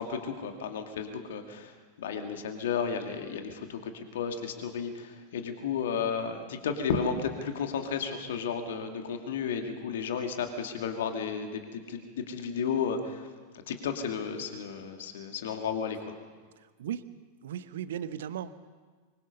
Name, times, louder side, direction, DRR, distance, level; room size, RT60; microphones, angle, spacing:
voice 1, 0.0-13.3 13.7-16.1, left 6 dB, 60° left, 5 dB, 2.3 m, -33 dB
voice 2, 16.6-17.1 17.4-18.6, right 9 dB, 60° right, 14 dB, 1.0 m, -37 dB
24.5 x 23.0 x 5.5 m, 1.5 s
figure-of-eight pair, 90°, 0 cm